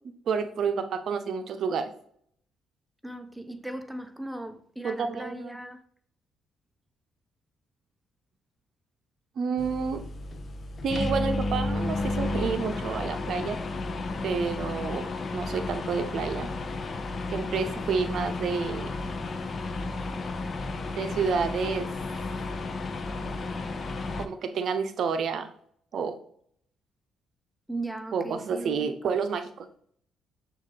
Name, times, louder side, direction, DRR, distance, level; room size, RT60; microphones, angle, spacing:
voice 1, 0.0-1.9 4.8-5.5 9.4-10.1 10.8-13.6 14.2-16.5 17.3-18.9 20.9-21.9 24.1-25.5 25.9-26.2 28.1-29.7, right 5 dB, 65° right, 0.6 m, -29 dB
voice 2, 3.0-5.9 27.7-29.2, right 2 dB, 5° right, 0.6 m, -38 dB
sound 1, 9.6-24.3, left 2 dB, 45° left, 0.5 m, -32 dB
6.4 x 2.4 x 3.3 m
supercardioid pair, 55°, 0 cm